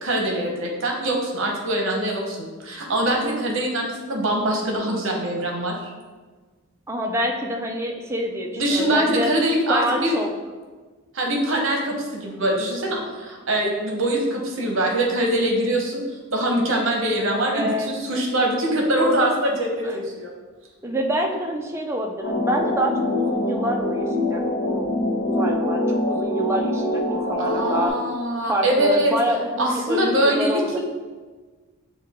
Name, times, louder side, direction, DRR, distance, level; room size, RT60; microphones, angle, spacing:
voice 1, 0.0-5.9 8.5-10.1 11.1-16.0 16.3-20.3 27.4-29.1 29.6-30.8, right 1 dB, 65° right, 0 dB, 0.8 m, -23 dB
voice 2, 6.9-9.3 9.7-10.3 17.3-17.9 19.8-20.0 20.8-24.9 25.2-27.9 28.4-30.8, equal, 10° right, 2 dB, 0.3 m, -27 dB
sound 1, 22.2-27.9, left 1 dB, 70° left, 0.9 m, -24 dB
6.5 x 2.3 x 3.5 m, 1.4 s
head